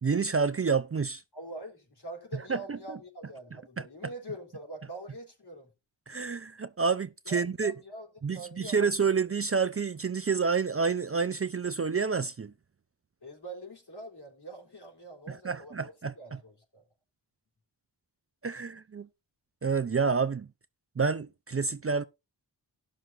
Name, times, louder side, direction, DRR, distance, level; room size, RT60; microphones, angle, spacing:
voice 1, 0.0-1.2 2.5-3.0 3.8-3.9 6.1-7.7 8.2-12.5 15.3-16.4 18.4-19.1 19.6-20.5 21.0-22.0, right 5 dB, 35° right, 0.5 m, -29 dB
voice 2, 1.3-5.7 7.3-8.1 8.3-8.8 13.2-16.8, right 1 dB, 60° left, 3.6 m, -44 dB
18.5 x 6.2 x 2.6 m
wide cardioid pair, 55°, 43 cm